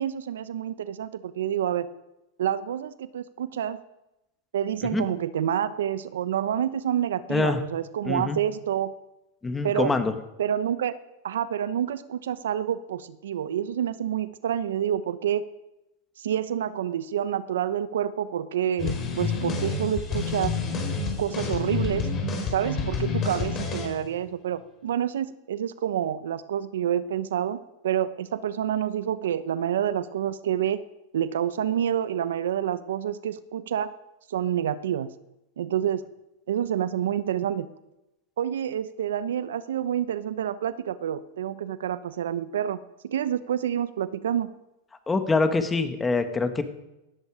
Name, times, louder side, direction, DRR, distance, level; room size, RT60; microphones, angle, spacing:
voice 1, 0.0-1.9 2.4-3.8 4.5-8.9 9.6-10.0 10.4-10.9 11.2-15.5 16.2-20.6 21.2-22.1 22.5-30.8 31.1-33.9 34.3-35.1 35.6-36.0 36.5-37.7 38.4-44.5, right 10 dB, 80° right, 14 dB, 0.9 m, -28 dB
voice 2, 8.1-8.4 9.4-10.1 45.1-46.6, left 3 dB, 15° left, 8 dB, 1.7 m, -24 dB
sound 1, 18.8-24.0, left 4 dB, 30° left, 4.9 m, -29 dB
18.0 x 14.0 x 5.0 m, 0.93 s
hypercardioid pair, 125°, 0 cm